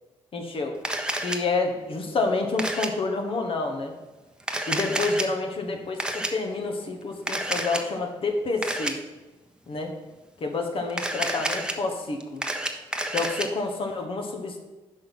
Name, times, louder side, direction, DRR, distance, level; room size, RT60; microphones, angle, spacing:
voice 1, 0.3-0.8 1.2-3.9 4.7-9.0 9.7-9.9 10.4-12.4 13.1-14.6, left 3 dB, 50° left, 4 dB, 1.2 m, -28 dB
Camera, 0.8-1.4 2.6-2.9 4.4-5.2 6.0-6.3 7.3-7.8 8.6-8.9 10.9-11.7 12.2-13.5, right 1 dB, 10° right, 0.9 m, -29 dB
5.5 x 5.5 x 5.9 m, 1.1 s
supercardioid pair, 60°, 12 cm